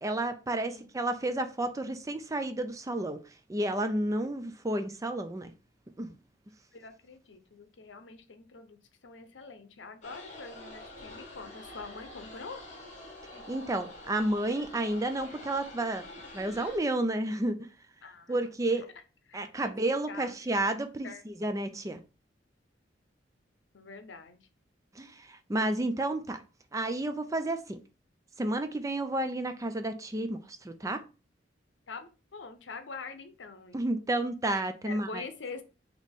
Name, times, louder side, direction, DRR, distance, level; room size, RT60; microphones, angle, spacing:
voice 1, 0.0-3.2 3.5-5.5 6.0-6.1 13.3-16.1 16.3-17.7 18.3-18.9 19.3-22.0 25.0-26.4 26.7-27.8 28.4-31.0 33.7-35.2, right 1 dB, 20° right, 0.4 m, -31 dB
voice 2, 6.7-12.6 18.0-18.9 19.3-19.7 20.1-20.3 21.0-21.2 23.7-24.5 31.9-33.8 34.8-35.6, left 4 dB, 80° left, 0.7 m, -45 dB
sound 1, 10.0-16.8, left 1 dB, 40° left, 1.5 m, -47 dB
4.1 x 3.0 x 3.5 m
head